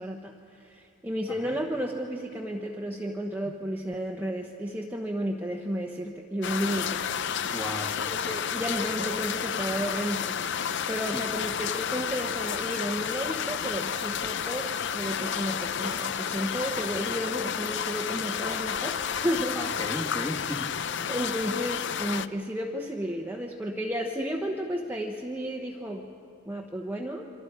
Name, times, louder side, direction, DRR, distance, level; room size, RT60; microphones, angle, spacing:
voice 1, 0.0-7.5 8.1-10.4 10.9-19.6 21.1-26.1 26.5-27.2, equal, 10° right, 0 dB, 0.9 m, -33 dB
sound 1, 6.4-22.3, left 8 dB, 55° left, 0.5 m, -31 dB
voice 2, 7.5-7.9 11.0-11.3 19.6-20.7, left 1 dB, 15° left, 0 dB, 1.7 m, -35 dB
28.5 x 24.5 x 4.9 m, 2.6 s
head